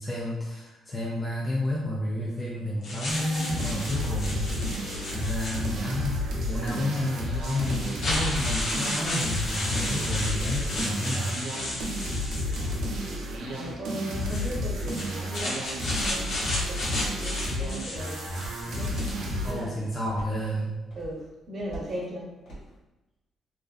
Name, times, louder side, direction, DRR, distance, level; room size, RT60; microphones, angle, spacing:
voice 1, 0.0-4.5 5.1-6.2 6.4-11.5 19.4-20.7, left 1 dB, 25° left, -5 dB, 0.5 m, -31 dB
sound 1, 2.8-6.0 6.9-7.0 7.4-13.2 14.1-19.3, left 1 dB, 65° left, 0.7 m, -33 dB
sound 2, 3.1-19.6, left 1 dB, 80° right, 0.5 m, -31 dB
voice 2, 12.2-12.7 13.4-18.2 18.6-19.9 21.0-22.2, equal, 45° right, -2 dB, 0.8 m, -38 dB
sound 3, 16.3-22.8, right 3 dB, 85° left, 1.4 m, -46 dB
2.6 x 2.5 x 2.4 m, 1.0 s
cardioid pair, 90°, 0 cm